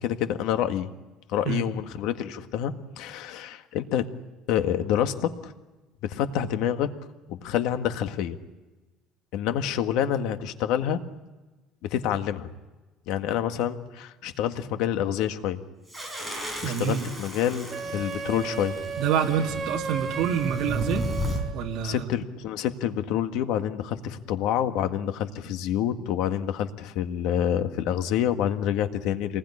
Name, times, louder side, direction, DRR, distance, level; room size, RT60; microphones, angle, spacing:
voice 1, 0.0-0.9 1.3-4.1 4.5-5.5 6.0-6.9 7.3-8.4 9.3-11.0 11.9-12.5 13.1-15.6 16.3-17.7 17.9-18.8 21.8-29.4, left 10 dB, 65° left, 8 dB, 1.7 m, -27 dB
sound 1, 15.9-21.4, right 1 dB, ahead, 4.8 m, -34 dB
voice 2, 16.6-17.1 19.0-21.1 21.5-22.1, right 8 dB, 55° right, 1 dB, 2.2 m, -27 dB
Wind instrument woodwind instrument, 17.7-21.8, right 4 dB, 30° right, 2.2 m, -35 dB
27.0 x 20.5 x 10.0 m, 1.2 s
cardioid pair, 165°, 0 cm